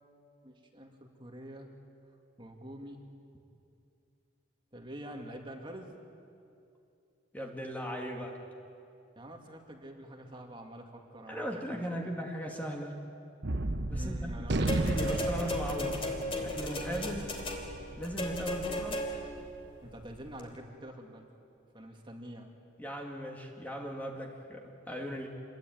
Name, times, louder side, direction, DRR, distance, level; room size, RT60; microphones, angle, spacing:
voice 1, 0.4-1.7 2.4-3.0 4.7-5.9 9.2-12.1 13.9-14.7 19.8-21.3 21.7-22.5, right 1 dB, 25° right, 2 dB, 2.4 m, -46 dB
voice 2, 7.3-8.4 11.3-13.0 13.9-16.0 16.4-17.4 18.0-19.1 22.8-25.3, equal, 10° left, 1 dB, 2.3 m, -38 dB
Gunshot gunfire, 13.4-20.0, right 2 dB, 60° right, 1.0 m, -35 dB
sound 1, 14.7-19.4 20.4-20.5, left 1 dB, 30° left, 3.2 m, -35 dB
27.5 x 22.0 x 9.4 m, 2.6 s
head